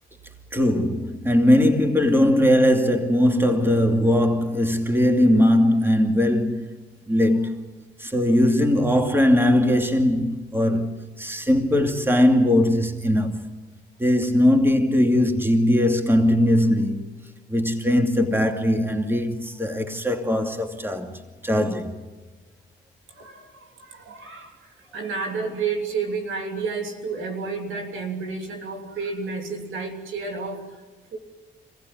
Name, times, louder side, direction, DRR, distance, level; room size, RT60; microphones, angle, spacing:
voice 1, 0.5-6.7 7.1-7.6 8.0-13.4 14.0-17.0 17.5-21.9, left 1 dB, 10° right, 2.5 m, -20 dB
voice 2, 23.1-30.7 31.1-31.2, right 4 dB, 80° right, 3.0 m, -31 dB
25.5 x 16.0 x 9.5 m
cardioid pair, 75°, 20 cm